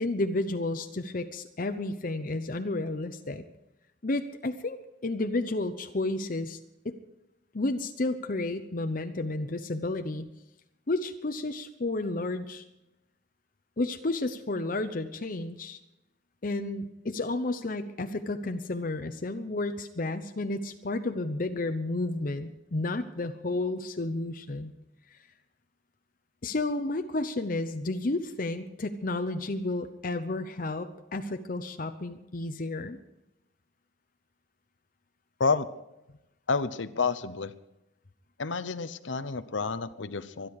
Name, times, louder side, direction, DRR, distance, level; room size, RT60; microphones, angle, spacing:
voice 1, 0.0-3.4 4.0-6.6 6.8-6.9 7.5-10.3 10.9-12.6 13.8-15.8 16.4-24.7 25.1-25.2 26.4-33.0, left 2 dB, 45° left, 7 dB, 0.8 m, -31 dB
voice 2, 36.5-37.5 38.4-40.5, left 4 dB, 80° left, 13 dB, 0.9 m, -29 dB
25.0 x 10.5 x 4.8 m, 0.93 s
head